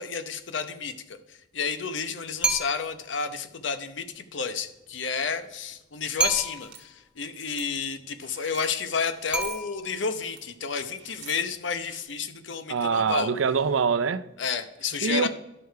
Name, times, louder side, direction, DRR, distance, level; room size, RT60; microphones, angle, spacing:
voice 1, 0.0-13.3 14.4-15.3, left 5 dB, 65° left, 0.8 m, -31 dB
sound 1, 2.4-3.1 6.2-6.9 9.3-10.1, right 4 dB, 5° right, 0.7 m, -29 dB
sound 2, 6.5-6.8 7.3-7.6 8.2-8.7 9.2-9.6 10.1-10.4 11.0-11.4 11.8-12.0, right 10 dB, 60° right, 1.4 m, -45 dB
voice 2, 12.7-14.2 15.0-15.3, right 6 dB, 85° right, 0.5 m, -24 dB
11.0 x 6.6 x 4.6 m
head